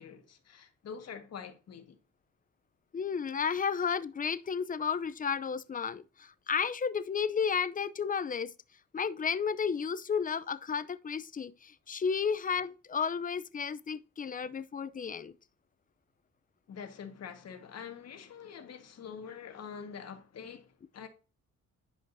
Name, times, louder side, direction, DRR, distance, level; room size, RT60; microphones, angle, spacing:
voice 1, 0.0-2.0 16.7-21.1, left 7 dB, 55° left, 1.5 m, -45 dB
voice 2, 2.9-8.5 8.9-15.3, left 6 dB, 30° left, 0.6 m, -32 dB
11.0 x 5.0 x 2.7 m
cardioid pair, 90°, 30 cm